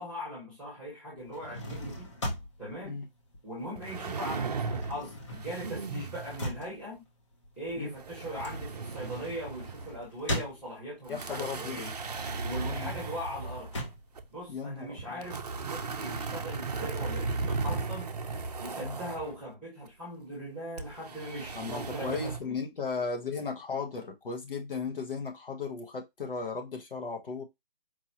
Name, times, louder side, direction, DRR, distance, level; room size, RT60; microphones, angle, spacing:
voice 1, 0.0-2.1 2.6-3.0 3.4-7.0 7.6-11.9 12.4-13.7 14.3-18.1 18.6-22.6, equal, 5° left, 1.4 m, -40 dB
sound 1, 1.2-4.0 4.3-11.1 11.6-15.1, left 1 dB, 30° left, 1.0 m, -40 dB
sound 2, 3.8-5.0 5.3-6.6 7.7-10.0 10.3-10.4 11.1-14.2 15.0-19.3 20.8-22.4, right 4 dB, 45° right, 0.6 m, -36 dB
voice 2, 11.1-11.8 12.6-12.9 14.5-15.2 18.8-19.0 21.5-27.4, left 4 dB, 65° left, 1.3 m, -36 dB
4.7 x 2.7 x 2.9 m
hypercardioid pair, 170°, 30 cm